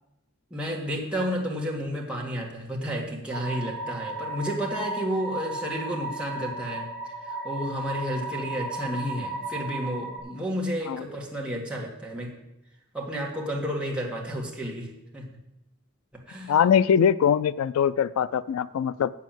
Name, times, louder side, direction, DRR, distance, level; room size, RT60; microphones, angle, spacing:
voice 1, 0.5-6.9 7.2-12.3 12.9-14.9 15.1-15.3 16.3-16.5, equal, 5° right, -2 dB, 1.9 m, -31 dB
sound 1, 3.3-10.2, right 2 dB, 50° left, 3.3 m, -35 dB
voice 2, 16.5-19.1, left 8 dB, 80° left, 18 dB, 0.3 m, -22 dB
8.3 x 7.2 x 7.6 m, 0.89 s
head